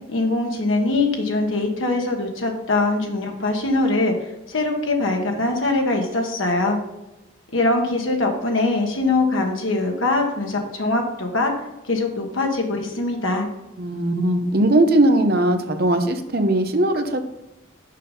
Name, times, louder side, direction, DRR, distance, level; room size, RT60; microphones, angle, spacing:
voice 1, 0.1-6.8 7.5-11.5 11.9-13.5, left 2 dB, 75° left, 2 dB, 1.4 m, -22 dB
voice 2, 13.8-17.2, right 1 dB, 50° right, 7 dB, 0.8 m, -19 dB
6.6 x 5.3 x 5.5 m, 0.97 s
head